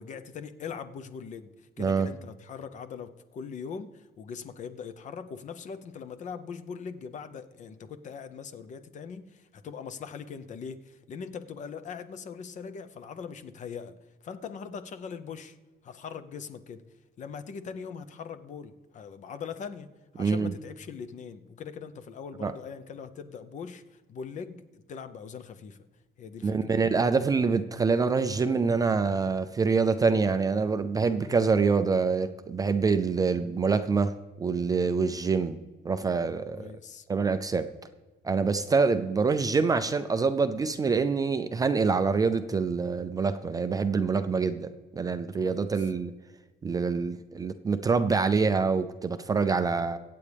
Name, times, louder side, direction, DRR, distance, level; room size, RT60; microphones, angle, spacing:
voice 1, 0.0-14.0 14.2-15.6 15.8-16.8 17.2-19.9 20.1-25.8 26.2-26.9 36.5-37.1 45.3-45.7, left 6 dB, 40° left, 11 dB, 0.7 m, -41 dB
voice 2, 1.8-2.1 20.2-20.5 22.4-22.5 26.4-35.6 35.8-36.7 37.1-37.7 38.2-46.1 46.6-50.0, right 4 dB, 20° right, 10 dB, 0.4 m, -26 dB
23.5 x 8.5 x 3.4 m, 1.3 s
cardioid pair, 160°, 18 cm